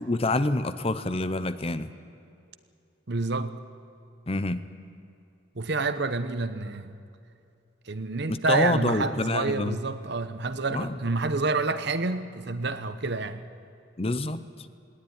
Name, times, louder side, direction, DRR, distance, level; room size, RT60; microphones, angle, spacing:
voice 1, 0.0-1.9 4.3-4.6 8.3-9.8 10.7-11.0 14.0-14.4, left 2 dB, 30° left, 12 dB, 0.7 m, -27 dB
voice 2, 3.1-3.5 5.5-6.9 7.9-13.4, right 3 dB, 55° right, 11 dB, 1.0 m, -28 dB
19.5 x 17.5 x 10.0 m, 2.6 s
head